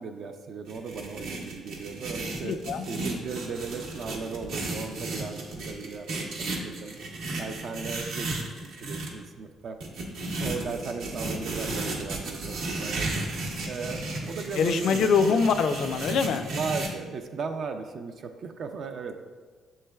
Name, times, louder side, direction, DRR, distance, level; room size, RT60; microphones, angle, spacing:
voice 1, 0.0-7.0 7.4-8.5 8.8-9.8 10.4-13.1 13.6-15.4 16.5-19.2, right 5 dB, 55° right, 6 dB, 0.3 m, -36 dB
sound 1, 0.7-9.1 9.8-16.9, right 2 dB, 80° right, 0.8 m, -34 dB
voice 2, 2.4-2.9 14.5-16.5, left 5 dB, 65° left, 9 dB, 0.3 m, -24 dB
7.1 x 3.2 x 2.2 m, 1.5 s
cardioid pair, 100°, 0 cm